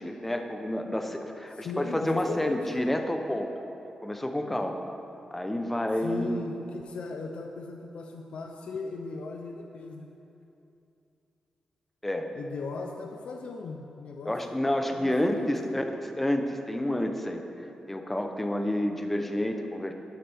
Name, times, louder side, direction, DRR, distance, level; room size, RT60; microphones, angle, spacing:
voice 1, 0.0-3.5 4.0-4.8 5.3-6.4 12.0-12.3 14.3-15.8 16.2-17.4 17.9-19.9, left 1 dB, 10° left, 5 dB, 0.7 m, -29 dB
voice 2, 1.5-2.7 6.0-10.1 12.3-15.8, left 4 dB, 65° left, 3 dB, 0.6 m, -38 dB
11.5 x 11.5 x 3.5 m, 2.9 s
wide cardioid pair, 150°, 2 cm